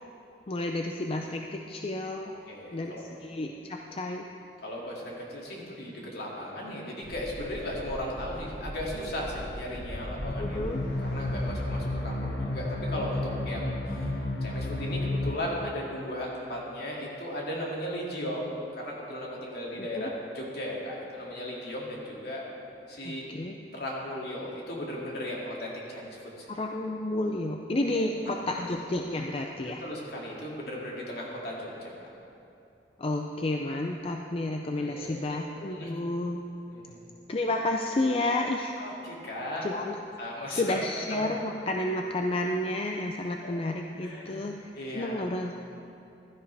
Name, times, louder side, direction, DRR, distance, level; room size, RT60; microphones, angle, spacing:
voice 1, 0.5-2.3 2.7-4.2 10.4-10.8 19.8-20.1 23.0-23.6 26.5-29.8 33.0-36.4 37.3-38.8 39.6-40.0 40.5-45.6, left 2 dB, 35° left, 3 dB, 0.5 m, -31 dB
voice 2, 2.2-3.0 4.6-10.6 11.1-14.1 14.4-22.4 22.9-23.2 23.7-26.5 27.9-28.4 29.8-31.9 34.8-35.4 35.6-35.9 36.7-37.0 38.8-39.7 40.2-40.8 41.1-41.2 43.4-43.5 44.0-44.4 44.8-45.3, left 1 dB, 65° left, -3 dB, 2.5 m, -36 dB
sound 1, 7.0-15.3, left 1 dB, 90° left, 1.5 m, -33 dB
15.5 x 12.5 x 3.4 m, 2.7 s
head